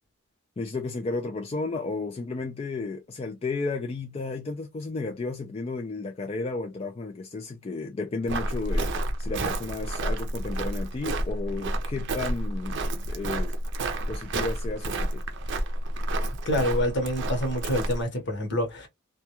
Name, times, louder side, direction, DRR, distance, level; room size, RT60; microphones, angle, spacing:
voice 1, 0.6-13.5 14.1-15.2, left 3 dB, 30° left, 0.3 m, -33 dB
Walk footsteps, 8.3-18.0, right 1 dB, 60° right, 0.5 m, -30 dB
voice 2, 16.4-18.9, left 1 dB, 60° left, 1.0 m, -27 dB
2.3 x 2.2 x 2.8 m
head